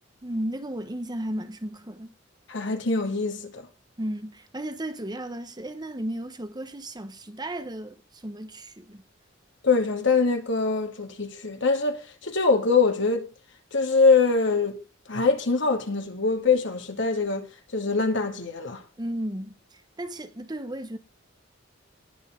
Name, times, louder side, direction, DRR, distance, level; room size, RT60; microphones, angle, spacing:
voice 1, 0.2-2.1 4.0-9.0 19.0-21.0, right 1 dB, 20° right, 1.2 m, -34 dB
voice 2, 2.5-3.7 9.6-13.3 13.7-14.8 15.1-17.5 17.7-18.8, left 4 dB, 65° left, 2.6 m, -23 dB
20.0 x 7.3 x 3.9 m
head